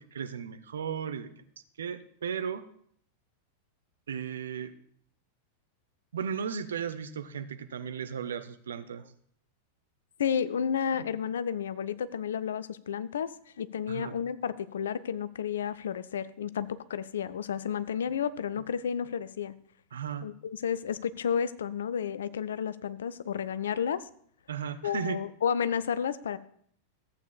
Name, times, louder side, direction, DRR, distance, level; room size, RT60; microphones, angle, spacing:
voice 1, 0.0-1.5 1.8-2.7 4.1-4.7 6.1-9.1 11.0-11.1 13.9-14.2 19.9-20.3 24.5-25.2, right 7 dB, 65° right, 11 dB, 0.6 m, -35 dB
voice 2, 10.2-13.3 13.6-19.5 20.2-24.1 24.8-26.4, left 8 dB, 65° left, 15 dB, 0.4 m, -31 dB
14.0 x 8.2 x 2.3 m, 0.63 s
figure-of-eight pair, 90°, 0 cm